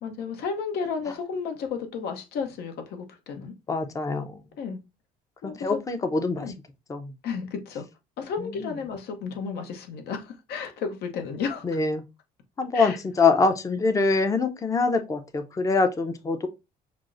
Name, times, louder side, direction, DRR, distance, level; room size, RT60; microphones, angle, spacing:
voice 1, 0.0-3.5 4.6-4.8 5.4-5.8 6.4-6.6 7.2-7.8 8.2-11.8 12.7-13.0, left 5 dB, 70° left, 0.9 m, -32 dB
voice 2, 3.7-4.4 5.4-6.5 6.9-7.1 8.4-8.7 11.6-12.0 12.6-16.5, left 4 dB, 20° left, 0.5 m, -24 dB
6.0 x 2.0 x 2.5 m
cardioid pair, 110°, 17 cm